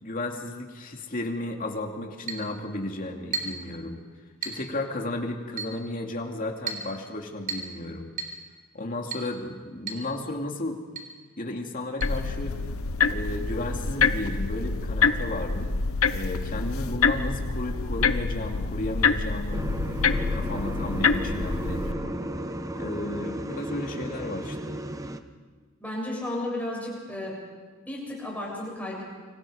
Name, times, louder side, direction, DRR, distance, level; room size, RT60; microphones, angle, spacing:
voice 1, 0.0-4.0 4.4-8.1 8.7-10.8 11.4-12.6 13.0-15.7 16.1-19.7 20.1-22.2 22.7-24.8, left 1 dB, 40° left, 2 dB, 2.6 m, -33 dB
Chink clink, 2.3-2.5 3.3-3.7 4.4-4.7 5.6-5.8 6.7-6.9 7.5-7.8 8.2-8.4 9.1-9.3 9.9-10.1 10.3-10.4 11.0-11.1 12.0-12.1, right 5 dB, 40° right, 3.9 m, -33 dB
sound 1, 12.0-21.9, left 5 dB, 75° left, 1.0 m, -26 dB
sound 2, 19.5-25.2, right 1 dB, 15° right, 1.0 m, -34 dB
voice 2, 25.8-27.4 27.8-29.0, left 1 dB, 5° left, -3 dB, 7.5 m, -33 dB
29.5 x 25.0 x 5.1 m, 1.5 s
head